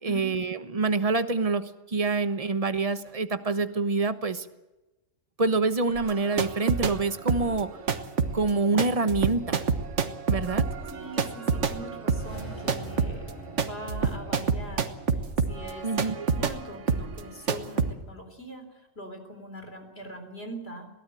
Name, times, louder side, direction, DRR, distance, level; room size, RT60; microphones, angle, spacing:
voice 1, 0.0-4.5 5.4-7.7 8.3-9.6 10.3-10.6 15.8-16.3, right 3 dB, 30° right, 10 dB, 1.1 m, -26 dB
sound 1, 6.0-7.0 7.3-16.6 16.9-17.2 17.5-17.9, right 5 dB, 65° right, 1.6 m, -28 dB
voice 2, 10.9-13.2 13.5-14.9 15.5-15.9 16.1-20.9, equal, 50° left, 6 dB, 4.0 m, -42 dB
sound 2, 12.0-16.4, right 2 dB, 20° left, 8.2 m, -44 dB
22.0 x 18.0 x 7.7 m, 1.0 s
omnidirectional pair, 1.4 m